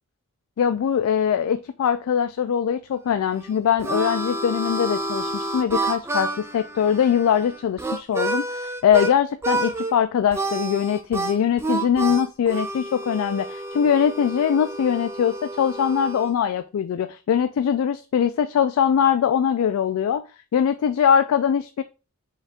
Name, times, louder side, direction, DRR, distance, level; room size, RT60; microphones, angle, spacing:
voice 1, 0.6-20.2 20.5-21.8, left 8 dB, 85° left, 0.3 m, -22 dB
Harmonica, 3.3-9.1 9.4-9.9 10.3-16.3, right 2 dB, 10° right, 0.3 m, -29 dB
5.2 x 2.5 x 3.4 m
head